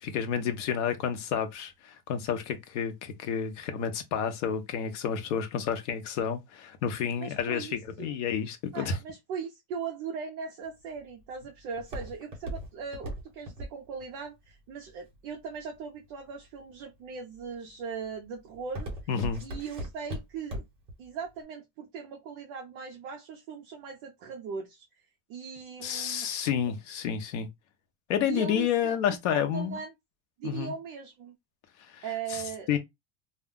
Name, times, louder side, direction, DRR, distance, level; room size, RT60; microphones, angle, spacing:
voice 1, 0.0-9.0 19.1-19.4 25.8-27.5 28.1-29.8 30.4-30.7 31.9-32.4 32.7-32.8, left 8 dB, 70° left, 0.8 m, -30 dB
voice 2, 7.2-8.2 8.7-18.9 19.4-20.6 21.0-24.9 25.3-26.6 28.2-28.9 29.3-29.9 30.4-31.3 32.0-32.7, right 6 dB, 35° right, 0.4 m, -39 dB
Walk footsteps, 10.6-15.8 16.4-16.8 17.3-17.7 18.0-20.9 21.3-21.4, equal, 15° right, 0.8 m, -38 dB
2.3 x 2.1 x 3.6 m
cardioid pair, 175°, 37 cm